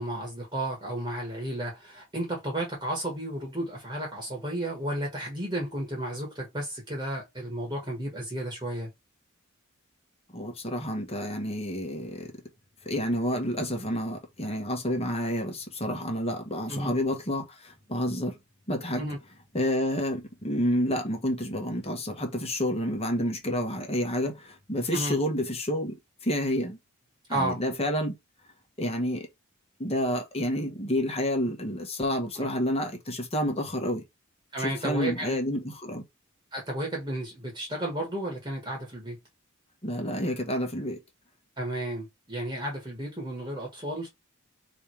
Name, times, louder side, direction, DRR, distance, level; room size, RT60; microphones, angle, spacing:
voice 1, 0.0-8.9 16.7-16.9 19.0-19.2 24.9-25.2 27.3-27.6 32.3-32.5 34.5-35.4 36.5-39.2 41.6-44.1, right 1 dB, 20° right, 1.5 m, -33 dB
voice 2, 10.3-12.3 12.8-18.4 18.7-19.0 19.5-26.0 26.2-26.8 27.3-28.1 28.8-29.3 29.8-34.0 34.6-36.0 39.8-41.0, equal, 30° left, 1.4 m, -29 dB
3.5 x 3.3 x 4.6 m
head